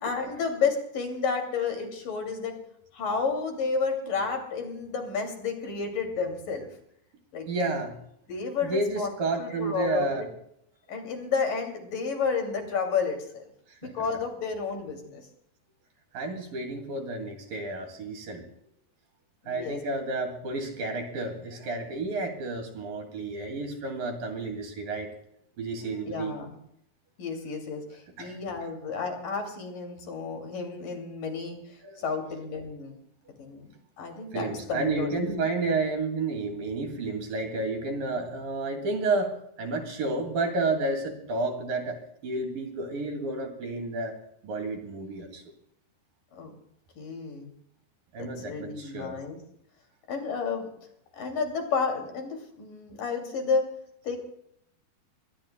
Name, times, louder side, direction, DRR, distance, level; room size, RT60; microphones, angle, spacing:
voice 1, 0.0-2.6 2.9-6.7 7.3-7.5 8.3-9.1 9.4-10.2 10.9-13.4 13.8-15.2 19.4-19.8 26.1-26.5 27.2-33.0 33.4-33.7 34.0-35.4 46.3-46.5 47.0-47.5 48.2-49.4 50.1-50.7 51.1-53.7 54.0-54.2, left 5 dB, 55° left, 3 dB, 4.1 m, -31 dB
voice 2, 7.5-8.0 8.6-10.2 13.7-13.9 16.1-18.4 19.5-25.1 25.6-26.4 28.2-28.4 31.8-32.1 34.3-44.2 44.4-45.4 48.1-49.2, right 3 dB, 60° right, 4 dB, 3.8 m, -31 dB
23.0 x 20.5 x 2.3 m, 0.72 s
omnidirectional pair, 4.7 m